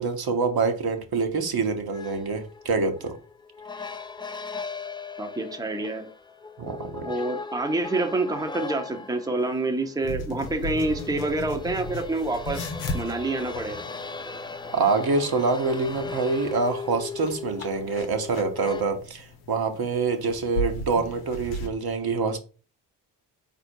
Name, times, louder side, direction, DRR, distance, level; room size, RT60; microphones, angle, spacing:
voice 1, 0.0-3.2 6.6-7.1 14.7-22.4, right 4 dB, 45° right, 1.0 m, -26 dB
sound 1, 1.9-18.8, left 4 dB, 10° left, 0.4 m, -38 dB
voice 2, 5.2-6.1 7.0-13.8, right 2 dB, 5° right, 0.8 m, -27 dB
sound 2, 10.0-21.7, left 1 dB, 85° left, 0.8 m, -37 dB
4.2 x 2.7 x 4.4 m
hypercardioid pair, 40°, 50 cm